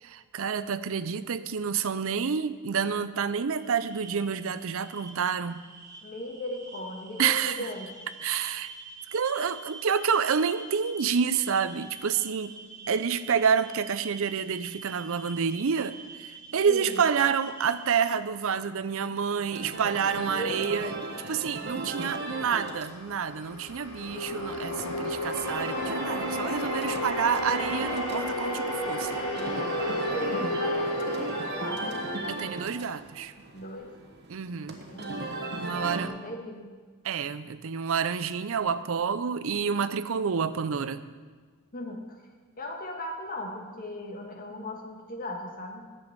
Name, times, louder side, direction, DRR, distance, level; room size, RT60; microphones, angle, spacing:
voice 1, 0.0-5.7 7.2-7.7 8.2-8.7 9.1-12.5 12.9-20.9 21.3-29.2 32.3-33.3 34.3-34.8 35.6-36.1 37.0-41.0, right 6 dB, 65° right, 14 dB, 0.5 m, -28 dB
sound 1, 3.5-18.0, right 3 dB, 20° right, 2.1 m, -46 dB
voice 2, 6.0-7.9 16.7-17.0 20.3-21.1 29.8-31.9 33.5-33.9 34.7-36.7 41.7-42.2 42.6-45.8, left 1 dB, 40° left, 2 dB, 1.6 m, -37 dB
sound 2, 19.4-36.1, right 2 dB, 50° right, 1.3 m, -37 dB
sound 3, 22.5-32.9, left 1 dB, 85° left, 3.6 m, -32 dB
10.5 x 7.1 x 8.0 m, 1.5 s
head